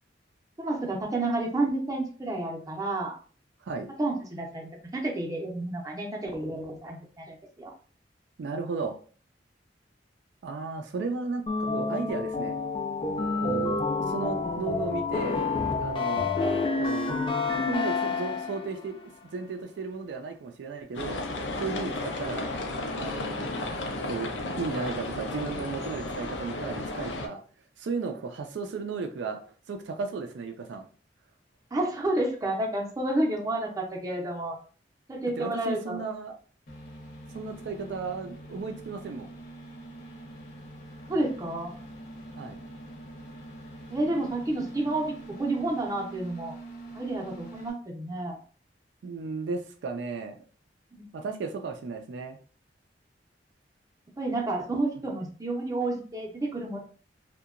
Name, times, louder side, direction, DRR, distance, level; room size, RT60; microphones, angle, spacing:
voice 1, 0.6-3.2 4.0-7.7 31.7-34.6 35.1-36.0 41.1-41.7 43.9-45.1 45.4-46.5 46.9-48.4 50.9-51.1 54.2-56.8, right 2 dB, 20° right, -1 dB, 0.6 m, -30 dB
voice 2, 8.4-9.0 10.4-12.5 13.4-15.4 15.8-16.3 16.8-17.2 17.6-19.0 19.3-21.2 21.6-22.5 22.9-23.5 24.0-24.3 24.6-27.4 27.8-30.9 35.4-36.4 37.3-39.3 42.4-42.6 49.0-50.4 51.1-52.4, right 4 dB, 70° right, 4 dB, 0.4 m, -34 dB
sound 1, 11.5-18.8, left 4 dB, 30° left, 0.4 m, -28 dB
sound 2, 21.0-27.3, left 2 dB, 85° left, 0.5 m, -33 dB
sound 3, 36.7-47.7, right 1 dB, 60° left, 0.8 m, -44 dB
2.7 x 2.2 x 2.4 m, 0.41 s
head